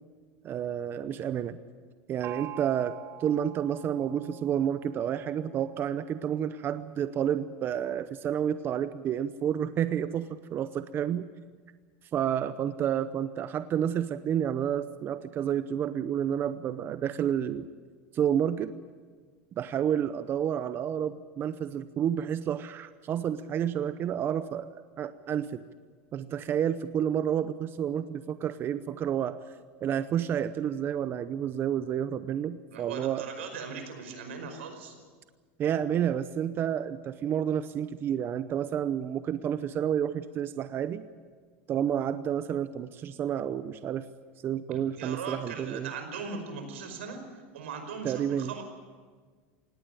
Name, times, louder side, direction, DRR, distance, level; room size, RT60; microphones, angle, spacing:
voice 1, 0.4-1.6 2.1-11.3 12.1-17.7 18.1-18.7 19.6-25.6 26.1-29.4 29.8-33.2 35.6-41.1 41.7-44.1 44.4-45.9 48.0-48.5, right 9 dB, 35° right, 12 dB, 0.7 m, -30 dB
Gong, 2.2-5.7, right 15 dB, 50° right, 2.3 m, -46 dB
voice 2, 32.7-35.0 44.7-48.6, right 5 dB, 90° right, 6 dB, 5.1 m, -39 dB
18.5 x 18.0 x 9.8 m, 1.5 s
supercardioid pair, 125°, 7 cm